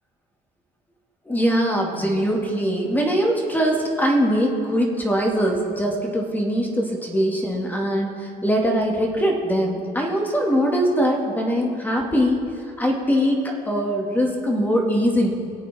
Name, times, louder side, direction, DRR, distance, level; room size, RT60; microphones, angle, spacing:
voice 1, 1.3-8.1 8.4-12.4 12.8-15.3, equal, 10° left, 0 dB, 2.1 m, -22 dB
22.5 x 8.4 x 3.6 m, 2.2 s
cardioid pair, 110°, 17 cm